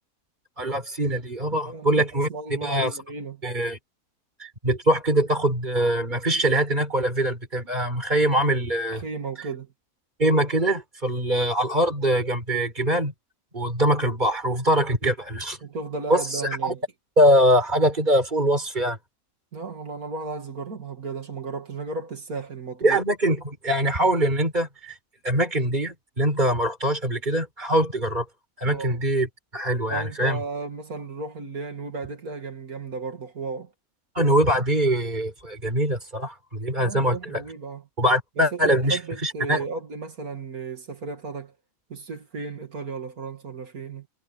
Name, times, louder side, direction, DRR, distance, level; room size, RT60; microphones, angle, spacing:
voice 1, 0.6-2.3 2.6-2.9 3.4-3.8 4.4-9.0 10.2-13.1 13.5-15.6 16.1-16.7 17.2-19.0 22.8-24.9 25.2-28.2 28.6-29.3 29.5-30.4 34.1-37.4 38.0-39.6, right 1 dB, 30° right, 5.1 m, -23 dB
voice 2, 1.6-3.4 8.9-9.7 15.6-16.8 19.5-23.0 28.7-29.0 29.9-33.7 36.8-37.8 38.4-41.5 41.9-44.1, right 4 dB, 85° right, 3.0 m, -34 dB
omnidirectional pair, 1.5 m